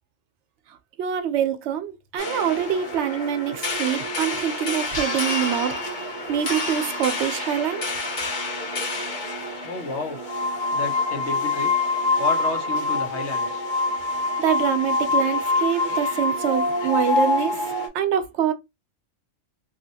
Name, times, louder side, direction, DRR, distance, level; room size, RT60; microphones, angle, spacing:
voice 1, 1.0-5.8 6.3-7.9 14.4-17.6 17.9-18.5, right 9 dB, 70° right, 0.9 m, -25 dB
sound 1, 2.2-17.9, left 3 dB, 45° left, 1.0 m, -26 dB
voice 2, 9.6-10.2 10.7-11.7 12.2-13.6, left 2 dB, 65° left, 1.2 m, -31 dB
3.1 x 2.8 x 2.7 m
omnidirectional pair, 1.3 m